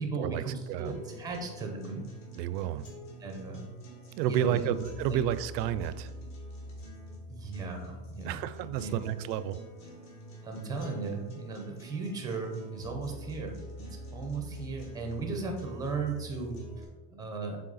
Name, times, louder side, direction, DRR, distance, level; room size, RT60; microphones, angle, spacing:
voice 1, 0.0-2.0 3.2-3.6 4.3-5.2 7.3-8.5 8.7-9.0 10.4-17.6, right 4 dB, 10° right, 3 dB, 0.6 m, -36 dB
sound 1, 0.8-16.8, equal, 35° left, 1.5 m, -46 dB
voice 2, 2.4-2.8 4.2-6.1 8.2-9.6, right 10 dB, 85° right, 14 dB, 0.6 m, -30 dB
6.5 x 3.6 x 4.0 m, 1.2 s
supercardioid pair, 155°, 49 cm